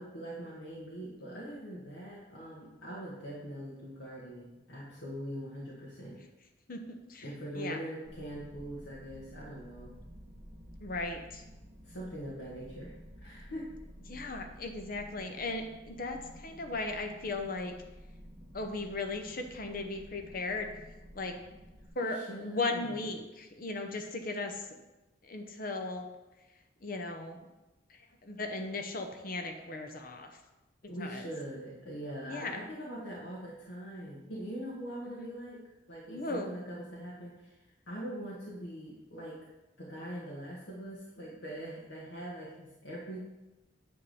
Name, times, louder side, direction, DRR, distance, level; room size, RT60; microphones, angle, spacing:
voice 1, 0.0-6.2 7.2-9.9 11.8-12.9 13.2-13.7 22.0-23.0 30.9-35.6 35.9-37.6 37.9-39.4 39.8-43.2, right 1 dB, 80° left, -6 dB, 1.7 m, -42 dB
sound 1, 8.0-21.9, equal, 20° right, 1.4 m, -52 dB
voice 2, 10.8-11.4 14.1-17.8 18.5-20.7 21.1-21.3 22.0-24.7 25.2-26.1 26.8-27.5 28.2-30.3 31.0-31.3 32.3-32.6 35.1-35.3 36.1-36.5, left 3 dB, 45° left, 5 dB, 0.8 m, -37 dB
9.6 x 3.7 x 7.0 m, 1.0 s
head